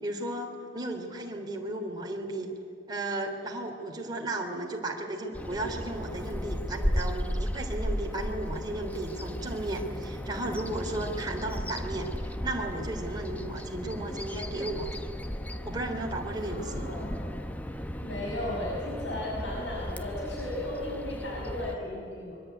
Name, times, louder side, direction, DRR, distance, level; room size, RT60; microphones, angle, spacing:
voice 1, 0.0-2.5 2.9-14.9 15.6-16.9, right 1 dB, 25° right, 1 dB, 3.4 m, -34 dB
Bird vocalization bird call bird song, 5.3-21.8, equal, 10° left, 1.0 m, -35 dB
voice 2, 16.4-17.4 18.0-22.4, left 1 dB, 90° left, -3 dB, 6.5 m, -36 dB
24.5 x 23.0 x 9.5 m, 2.7 s
head